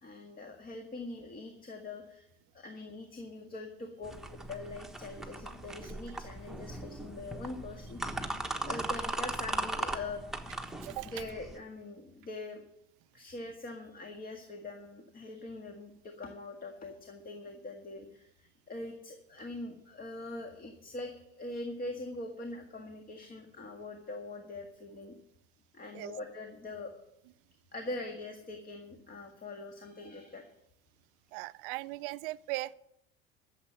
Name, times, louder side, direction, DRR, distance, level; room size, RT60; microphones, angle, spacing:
voice 1, 0.0-2.3 2.5-4.2 4.5-8.2 8.6-10.2 11.0-12.6 13.1-25.1 25.7-27.1 27.7-30.5, left 2 dB, 30° left, 1.8 m, -43 dB
sound 1, 4.0-11.6, right 1 dB, ahead, 1.4 m, -38 dB
voice 2, 10.8-11.1 25.9-26.1 31.3-32.7, right 19 dB, 65° right, 0.5 m, -38 dB
13.0 x 7.3 x 7.7 m
hypercardioid pair, 75°, 29 cm